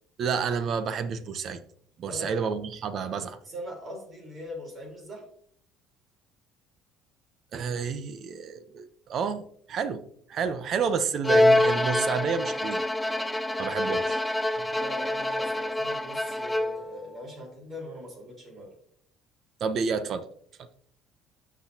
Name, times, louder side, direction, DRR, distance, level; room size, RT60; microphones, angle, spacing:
voice 1, 0.2-1.6 2.0-3.4 7.5-9.4 9.7-10.0 10.3-12.8 13.6-14.2 19.6-20.2, right 6 dB, 45° right, 12 dB, 0.7 m, -29 dB
voice 2, 2.1-2.4 3.4-5.2 14.8-18.7, equal, 30° right, 0 dB, 4.0 m, -41 dB
Bowed string instrument, 11.2-17.0, left 1 dB, 5° left, 0.4 m, -25 dB
11.5 x 6.1 x 2.8 m, 0.63 s
cardioid pair, 135°, 0 cm